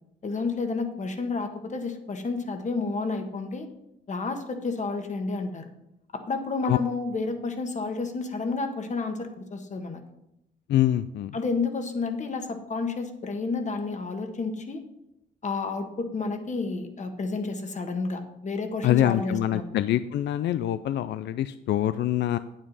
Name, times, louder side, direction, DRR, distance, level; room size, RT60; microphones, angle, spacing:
voice 1, 0.2-3.7 4.1-5.7 6.1-10.0 11.3-14.8 15.4-19.6, left 4 dB, 35° left, 6 dB, 1.4 m, -30 dB
voice 2, 10.7-11.4 18.8-22.4, left 12 dB, 65° left, 13 dB, 0.4 m, -25 dB
8.8 x 8.8 x 4.1 m, 0.84 s
cardioid pair, 90°, 20 cm